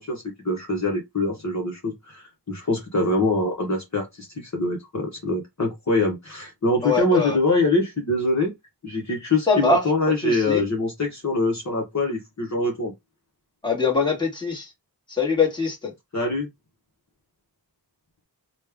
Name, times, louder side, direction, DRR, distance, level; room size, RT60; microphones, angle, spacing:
voice 1, 0.0-8.5 8.8-12.9 16.1-16.5, left 2 dB, 40° left, 1.1 m, -24 dB
voice 2, 6.8-7.4 9.5-9.8 10.2-10.6 13.6-14.7 15.1-15.9, left 4 dB, 10° left, 1.5 m, -22 dB
3.1 x 2.3 x 3.4 m
wide cardioid pair, 80°, 42 cm